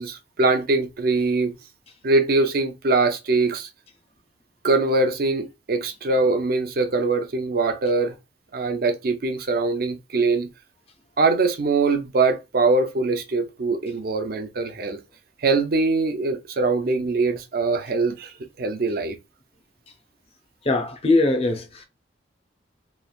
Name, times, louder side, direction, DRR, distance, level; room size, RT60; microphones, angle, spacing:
voice 1, 0.0-1.6 2.0-3.7 4.6-8.2 8.5-10.5 11.2-15.0 15.4-19.2, right 3 dB, 55° right, 0.5 m, -22 dB
voice 2, 20.6-21.8, left 2 dB, 30° left, 0.6 m, -21 dB
3.1 x 2.4 x 2.3 m
head